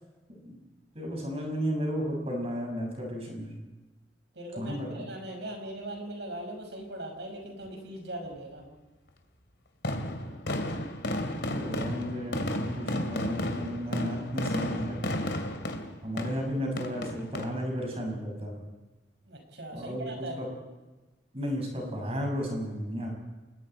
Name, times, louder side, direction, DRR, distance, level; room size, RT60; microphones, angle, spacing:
voice 1, 0.9-3.5 4.6-5.0 11.4-15.1 16.0-18.6 19.7-20.5 21.3-23.1, equal, 35° right, 1 dB, 6.4 m, -33 dB
voice 2, 4.3-8.6 19.2-20.5, right 1 dB, 75° right, 2 dB, 5.9 m, -39 dB
sound 1, 9.8-17.5, left 1 dB, 80° left, 2.5 m, -33 dB
30.0 x 19.5 x 4.5 m, 1.2 s
head